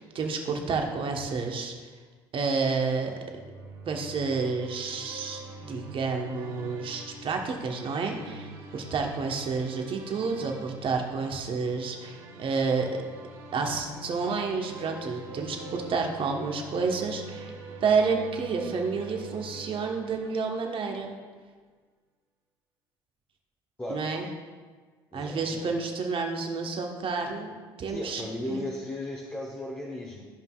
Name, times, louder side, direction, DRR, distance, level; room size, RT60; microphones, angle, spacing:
voice 1, 0.0-1.7 2.3-3.1 3.9-12.9 13.5-17.5 17.8-21.1 23.9-24.3 25.1-27.5 27.8-28.2 28.5-28.7, right 4 dB, 45° right, 2 dB, 1.2 m, -30 dB
sound 1, 3.3-21.0, right 2 dB, 80° right, 1.6 m, -44 dB
voice 2, 25.1-25.7 27.9-30.3, left 1 dB, 15° left, -3 dB, 1.1 m, -36 dB
13.5 x 5.3 x 2.4 m, 1.5 s
hypercardioid pair, 65°, 13 cm